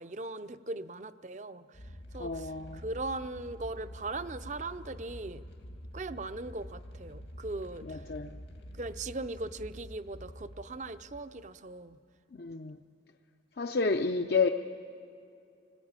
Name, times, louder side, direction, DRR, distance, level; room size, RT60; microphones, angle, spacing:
voice 1, 0.0-1.8 2.1-5.4 5.9-8.0 8.7-12.0, right 2 dB, 40° right, 13 dB, 0.6 m, -39 dB
sound 1, 1.7-11.8, equal, 85° left, 2.5 m, -47 dB
voice 2, 2.2-2.8 7.9-8.4 12.4-12.8 13.6-14.5, left 4 dB, 55° left, 6 dB, 0.6 m, -30 dB
26.0 x 19.5 x 8.9 m, 2.6 s
head